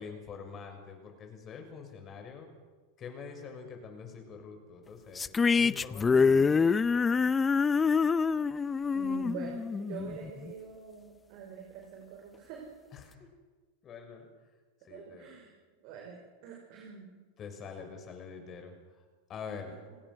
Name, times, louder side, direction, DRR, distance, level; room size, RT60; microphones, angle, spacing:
voice 1, 0.0-2.5 3.0-7.0 12.9-13.3 13.8-14.3 14.8-15.3 17.4-19.0 19.3-19.7, left 6 dB, 35° left, 4 dB, 6.6 m, -45 dB
sound 1, 5.2-10.5, left 5 dB, 20° left, 0.6 m, -26 dB
voice 2, 8.9-12.7 14.9-15.5 15.8-17.2 17.8-17.9 19.7-20.0, right 6 dB, 55° right, 1 dB, 5.2 m, -45 dB
29.0 x 19.0 x 6.5 m, 1.4 s
hypercardioid pair, 95°, 0 cm